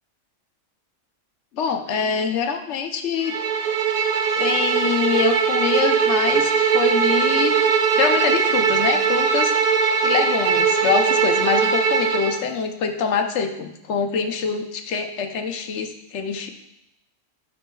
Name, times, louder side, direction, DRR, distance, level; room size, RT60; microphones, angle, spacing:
voice 1, 1.5-3.3 4.3-7.5 8.0-9.5 10.0-16.5, left 6 dB, 70° left, 5 dB, 1.0 m, -24 dB
Bowed string instrument, 3.3-12.4, right 6 dB, 65° right, 0.4 m, -20 dB
12.0 x 4.3 x 2.3 m, 0.86 s
omnidirectional pair, 1.3 m